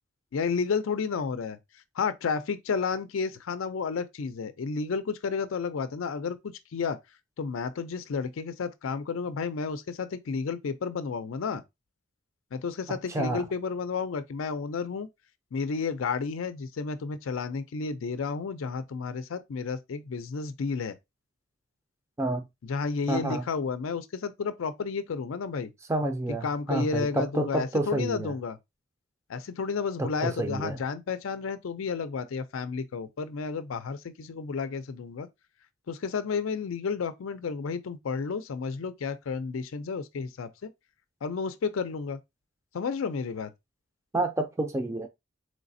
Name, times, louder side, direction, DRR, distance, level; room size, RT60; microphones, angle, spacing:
voice 1, 0.3-1.6 2.0-7.0 7.4-11.6 12.5-15.1 15.5-20.9 22.6-25.7 26.4-28.6 29.3-35.3 35.9-40.7 41.2-42.2 42.7-43.5, left 5 dB, 85° left, 0.4 m, -31 dB
voice 2, 12.9-13.4 22.2-22.4 23.1-23.4 25.9-28.3 30.0-30.8 44.1-45.1, right 2 dB, 15° right, 0.4 m, -29 dB
4.0 x 3.2 x 2.6 m
head